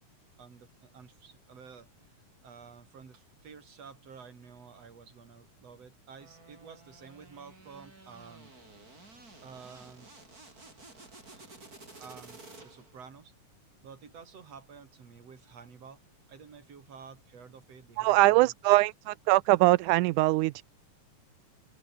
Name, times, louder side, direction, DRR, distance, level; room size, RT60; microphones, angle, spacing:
voice 1, 0.4-1.9 2.4-8.5 9.4-10.1 11.3-11.6 12.0-13.3 13.8-16.0 16.3-18.5, right 6 dB, 45° right, 4.3 m, -51 dB
sound 1, 6.2-13.0, right 3 dB, 25° right, 5.0 m, -53 dB
voice 2, 18.0-20.6, right 19 dB, 80° right, 1.9 m, -22 dB
omnidirectional pair, 4.0 m